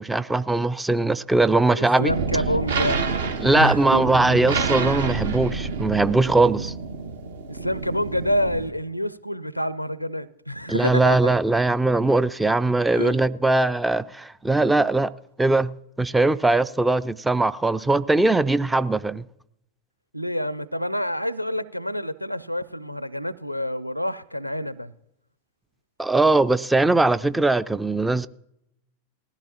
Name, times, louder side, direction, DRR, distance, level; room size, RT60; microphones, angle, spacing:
voice 1, 0.0-2.1 3.4-6.7 10.7-15.1 15.4-15.7 16.0-19.2 26.0-28.3, right 2 dB, 5° right, 0.4 m, -20 dB
voice 2, 1.7-3.0 3.5-4.0 7.5-11.4 12.9-13.2 20.1-24.9, equal, 90° left, 0.5 m, -27 dB
sound 1, 2.1-8.7, right 4 dB, 65° right, 1.2 m, -28 dB
19.5 x 14.5 x 2.9 m
figure-of-eight pair, 90°, 0 cm